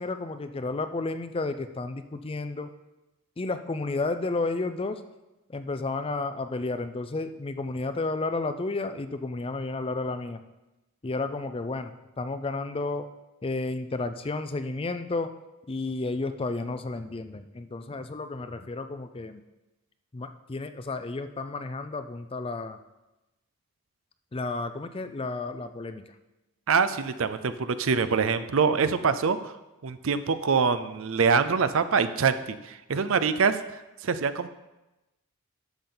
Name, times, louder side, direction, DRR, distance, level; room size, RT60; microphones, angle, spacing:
voice 1, 0.0-2.7 3.4-5.0 5.5-10.4 11.0-13.1 13.4-15.3 15.7-19.4 20.1-22.8 24.3-26.0, left 3 dB, 25° left, 10 dB, 0.4 m, -32 dB
voice 2, 26.7-29.5 29.8-33.6 34.0-34.5, right 5 dB, 60° right, 13 dB, 0.5 m, -24 dB
12.0 x 7.0 x 3.9 m, 1.0 s
head